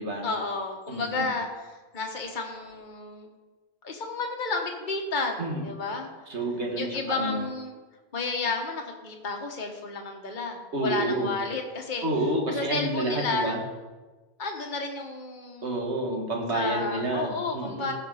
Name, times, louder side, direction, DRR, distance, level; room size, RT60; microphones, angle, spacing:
voice 1, 0.2-1.5 1.9-3.3 3.8-6.1 6.8-7.8 8.1-12.1 12.5-13.6 14.4-15.8 16.5-17.9, left 3 dB, 45° left, 2 dB, 1.4 m, -31 dB
voice 2, 0.9-1.3 5.4-5.6 6.3-7.4 10.7-11.3 12.0-13.6 15.6-17.9, right 1 dB, 70° right, 0 dB, 2.2 m, -29 dB
16.0 x 6.6 x 4.9 m, 1.2 s
omnidirectional pair, 1.2 m